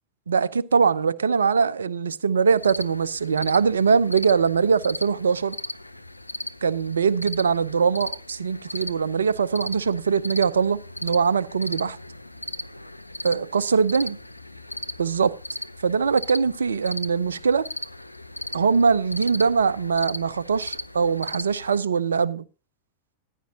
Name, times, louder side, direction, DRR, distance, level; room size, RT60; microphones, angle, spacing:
voice 1, 0.3-5.6 6.6-12.0 13.2-14.1 15.0-15.3 15.8-17.7 18.5-22.4, right 5 dB, 70° right, 0.7 m, -22 dB
sound 1, 2.6-21.8, left 1 dB, 85° left, 0.7 m, -37 dB
14.5 x 12.0 x 2.7 m
figure-of-eight pair, 90°, 0 cm